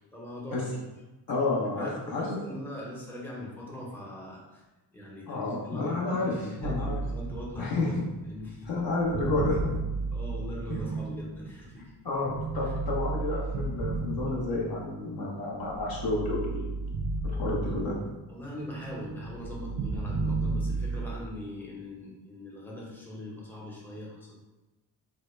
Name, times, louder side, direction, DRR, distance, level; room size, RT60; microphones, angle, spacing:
voice 1, 0.1-0.9 1.7-4.6 4.9-8.0 8.2-8.7 10.1-11.9 12.6-12.7 18.3-24.4, left 1 dB, 5° left, -4 dB, 0.7 m, -41 dB
voice 2, 1.3-2.4 5.3-6.3 6.6-6.9 7.6-8.0 8.6-9.7 12.0-17.0 17.2-18.0, left 3 dB, 50° left, -3 dB, 0.7 m, -30 dB
sound 1, 6.6-11.7 12.3-14.9 15.4-18.3 18.5-21.2, right 3 dB, 50° right, 0.4 m, -33 dB
2.1 x 2.1 x 3.0 m, 1.1 s
supercardioid pair, 45°, 46 cm